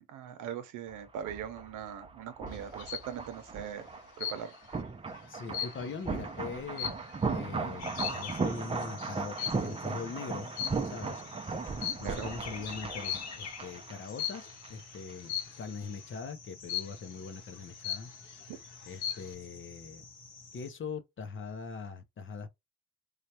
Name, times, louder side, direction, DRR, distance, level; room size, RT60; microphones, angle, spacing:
voice 1, 0.0-3.9 4.2-4.5 12.0-12.3 18.5-18.6, right 9 dB, 85° right, 0.8 m, -40 dB
sound 1, 0.9-14.7 14.9-15.1, right 4 dB, 20° right, 0.5 m, -37 dB
sound 2, 2.5-3.1 4.2-4.7 5.1-7.4 7.9-8.4 9.4-9.8 10.6-11.2 11.6-12.3 13.0-13.4 14.2-14.6 15.3-15.7 16.7-17.2 17.6-17.7 17.8-18.4 18.8-19.3, left 9 dB, 80° left, 0.8 m, -37 dB
voice 2, 5.3-6.9 7.3-10.5 10.8-11.2 12.0-18.1 18.9-20.0 20.5-22.5, left 5 dB, 40° left, 0.6 m, -42 dB
sound 3, 7.8-20.7, left 5 dB, 60° left, 1.1 m, -48 dB
3.2 x 2.3 x 2.8 m
cardioid pair, 90°, 30 cm